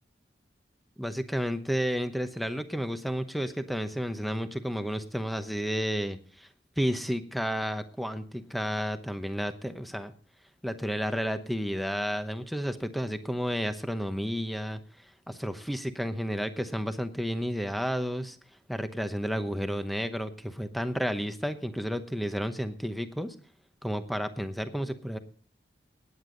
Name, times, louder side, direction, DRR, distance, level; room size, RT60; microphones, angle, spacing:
voice 1, 1.0-6.5 6.8-10.1 10.6-18.4 18.7-23.3 23.8-25.2, equal, ahead, 9 dB, 0.9 m, -31 dB
18.0 x 9.6 x 3.9 m, 0.44 s
head